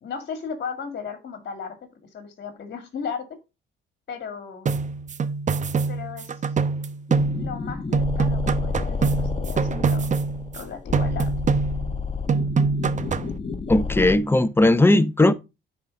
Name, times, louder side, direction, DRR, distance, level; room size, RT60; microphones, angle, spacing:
voice 1, 0.0-1.7 2.0-3.2 4.1-4.7 5.9-6.6 7.4-10.1 10.5-11.3, left 6 dB, 55° left, 2.2 m, -35 dB
sound 1, 4.7-7.7 7.9-10.6 10.9-12.0 12.3-13.4, right 4 dB, 40° right, 0.8 m, -24 dB
sound 2, 7.1-14.2, left 4 dB, 30° left, 1.2 m, -30 dB
voice 2, 13.7-15.3, left 2 dB, 10° left, 0.8 m, -17 dB
9.9 x 4.3 x 5.2 m
cardioid pair, 90°, 20 cm